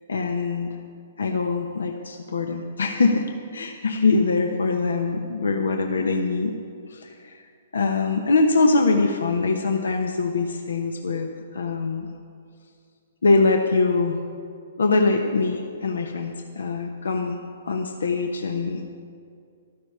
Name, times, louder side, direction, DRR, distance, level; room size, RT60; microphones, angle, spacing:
voice 1, 0.1-0.7 1.2-6.5 6.9-7.4 7.7-12.1 13.2-14.2 14.8-18.8, left 3 dB, 90° left, 4 dB, 1.0 m, -23 dB
14.5 x 12.5 x 5.6 m, 2.4 s
hypercardioid pair, 140°, 0 cm